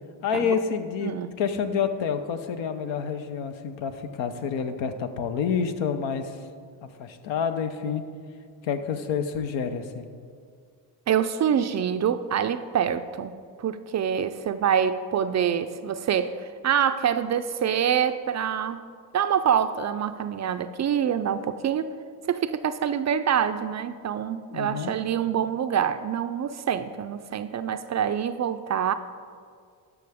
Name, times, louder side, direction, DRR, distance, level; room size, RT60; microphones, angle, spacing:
voice 1, 0.2-6.3 6.8-8.0 8.6-10.1 24.5-24.9, left 6 dB, 75° left, 8 dB, 0.8 m, -28 dB
voice 2, 11.1-18.8 19.1-21.9 22.2-28.9, right 8 dB, 40° right, 11 dB, 0.4 m, -26 dB
12.5 x 5.8 x 3.5 m, 2.1 s
supercardioid pair, 70°, 46 cm